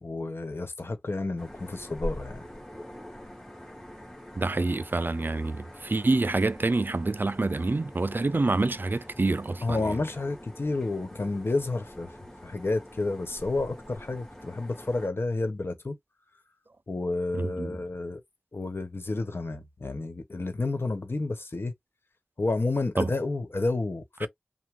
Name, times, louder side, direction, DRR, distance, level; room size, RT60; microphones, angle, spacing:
voice 1, 0.0-2.4 9.6-12.1 12.4-15.9 16.9-18.2 18.5-21.7 22.4-24.3, left 2 dB, 75° left, 1.2 m, -30 dB
sound 1, 1.4-15.1, equal, 10° left, 2.0 m, -44 dB
voice 2, 4.4-10.0 17.3-17.8 23.0-23.1 24.2-24.3, right 3 dB, 55° right, 0.4 m, -27 dB
5.9 x 2.2 x 3.7 m
wide cardioid pair, 55°, 4 cm